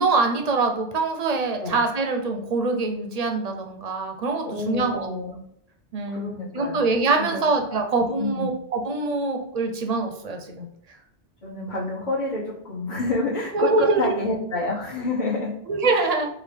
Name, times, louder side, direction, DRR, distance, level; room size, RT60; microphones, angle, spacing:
voice 1, 0.0-5.1 5.9-11.0 13.5-14.1 15.7-16.3, right 3 dB, 45° right, 4 dB, 0.6 m, -24 dB
voice 2, 4.4-5.4 6.1-6.8 7.2-7.4 7.7-7.8 8.2-8.5 11.4-15.5 15.9-16.1, left 2 dB, 45° left, -9 dB, 1.0 m, -28 dB
4.7 x 2.4 x 3.3 m, 0.71 s
omnidirectional pair, 1.1 m